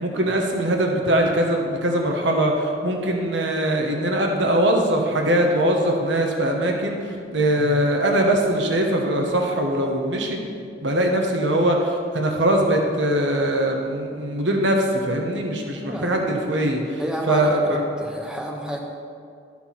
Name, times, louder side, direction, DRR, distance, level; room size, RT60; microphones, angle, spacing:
voice 1, 0.0-10.4 10.8-17.0 17.3-17.8, right 1 dB, 80° right, 2 dB, 1.1 m, -21 dB
voice 2, 15.7-16.1 17.0-18.8, equal, 5° right, 0 dB, 0.9 m, -30 dB
12.5 x 4.5 x 5.8 m, 2.4 s
head